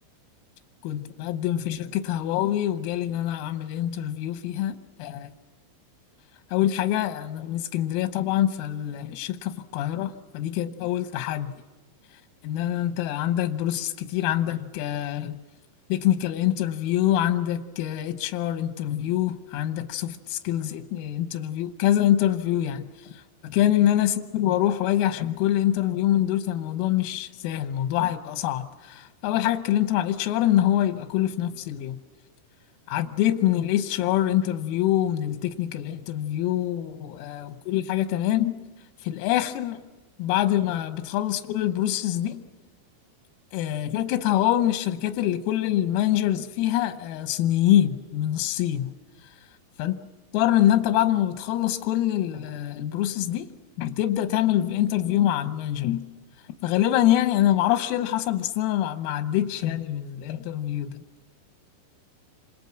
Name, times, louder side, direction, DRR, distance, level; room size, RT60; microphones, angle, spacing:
voice 1, 0.8-5.3 6.5-11.5 12.4-15.4 15.9-32.0 32.9-38.6 39.0-39.8 40.2-42.4 43.5-48.9 49.8-50.0 50.3-53.5 53.8-56.1 56.6-61.0, left 12 dB, 90° left, 3.8 m, -25 dB
28.0 x 27.0 x 5.9 m
omnidirectional pair, 6.0 m